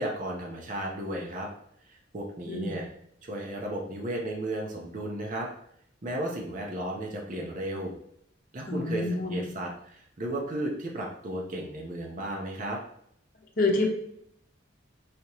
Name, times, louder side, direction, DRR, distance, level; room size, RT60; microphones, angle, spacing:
voice 1, 0.0-1.5 1.9-2.9 3.2-5.5 6.0-7.9 8.5-12.8, right 1 dB, 40° right, -1 dB, 0.7 m, -34 dB
voice 2, 8.7-9.5 13.6-13.9, left 2 dB, 50° left, 0 dB, 0.9 m, -27 dB
5.0 x 2.9 x 2.9 m, 0.70 s
head